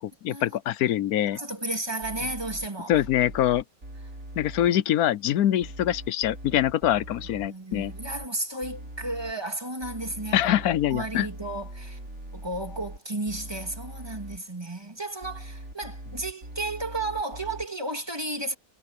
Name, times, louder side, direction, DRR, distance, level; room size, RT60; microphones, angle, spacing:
voice 1, 0.0-1.4 2.9-3.6 4.4-7.9 10.3-11.3, left 12 dB, 75° left, 1.1 m, -24 dB
voice 2, 1.3-2.9 7.3-12.0 12.3-18.5, right 2 dB, 15° right, 2.4 m, -33 dB
sound 1, 2.0-4.7 5.6-8.3 8.6-9.3 9.8-13.0 13.3-14.4 15.2-17.7, right 1 dB, 60° right, 6.6 m, -41 dB
omnidirectional pair, 1.6 m